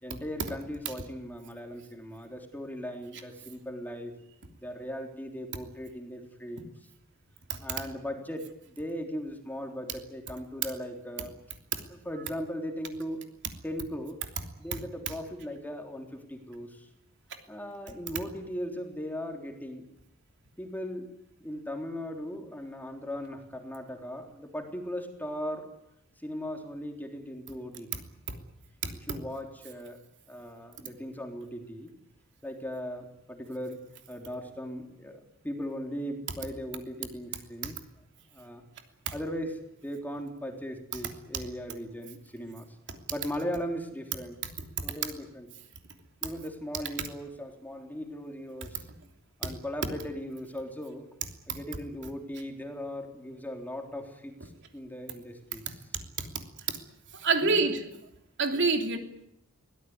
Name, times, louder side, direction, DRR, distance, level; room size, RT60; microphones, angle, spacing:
voice 1, 0.0-4.1 4.6-6.7 7.6-11.3 11.9-13.2 13.6-14.2 14.6-16.9 17.5-19.8 20.6-21.1 21.4-25.7 26.2-28.0 29.1-30.0 30.3-31.9 32.4-33.8 34.1-37.8 38.3-38.6 39.1-42.7 43.1-44.4 44.8-45.5 46.2-48.9 49.4-51.1 51.5-55.8 57.4-57.7 58.5-58.6, equal, 10° left, 3 dB, 3.4 m, -38 dB
voice 2, 28.8-29.2 37.6-37.7 39.1-39.2 41.3-41.4 42.9-43.0 44.6-44.8 49.4-49.5 51.5-51.6 55.5-55.6 55.9-56.8 57.1-57.8 58.4-59.0, right 4 dB, 60° right, 4 dB, 3.1 m, -29 dB
23.5 x 18.0 x 9.6 m, 0.83 s
head